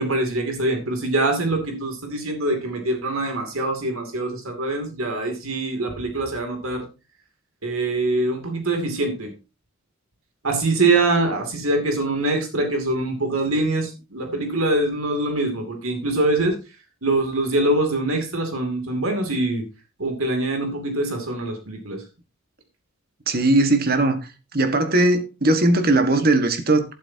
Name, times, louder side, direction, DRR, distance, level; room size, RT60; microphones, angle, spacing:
voice 1, 0.0-6.8 7.6-9.3 10.4-16.6 17.0-19.7 20.0-22.0, right 2 dB, 90° right, 2.7 m, -24 dB
voice 2, 23.3-24.2 24.5-26.8, right 2 dB, 45° right, 1.5 m, -19 dB
12.0 x 11.5 x 2.8 m
head